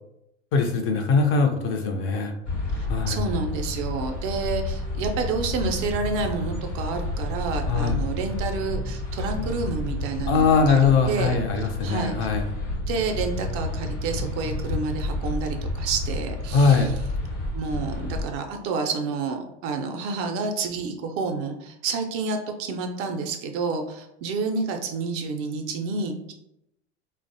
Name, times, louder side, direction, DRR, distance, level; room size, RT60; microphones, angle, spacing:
voice 1, 0.5-2.3 2.9-3.2 7.7-8.0 10.3-12.4 16.5-16.9, left 5 dB, 35° left, 4 dB, 0.4 m, -21 dB
sound 1, 2.4-18.3, left 1 dB, 85° left, 0.9 m, -30 dB
voice 2, 2.7-12.2 12.8-16.9 17.5-26.3, right 4 dB, 45° right, 4 dB, 0.4 m, -29 dB
2.5 x 2.0 x 2.6 m, 0.81 s
hypercardioid pair, 90°, 35 cm